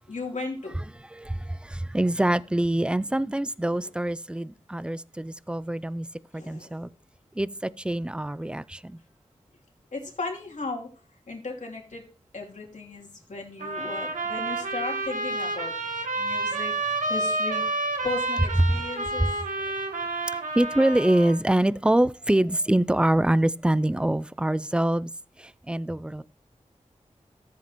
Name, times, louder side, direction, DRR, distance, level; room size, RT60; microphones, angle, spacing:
voice 1, 0.1-0.8 3.8-3.9 6.3-6.8 9.9-10.9 11.3-12.1 12.3-16.7 17.1-17.6 18.0-19.3, left 3 dB, 70° left, 2.7 m, -36 dB
voice 2, 1.1-6.1 6.3-6.9 7.4-9.0 20.6-25.1 25.4-26.2, right 1 dB, 10° right, 0.3 m, -25 dB
sound 1, 13.6-21.4, right 2 dB, 85° right, 1.5 m, -29 dB
13.5 x 7.6 x 2.9 m
cardioid pair, 55°, 13 cm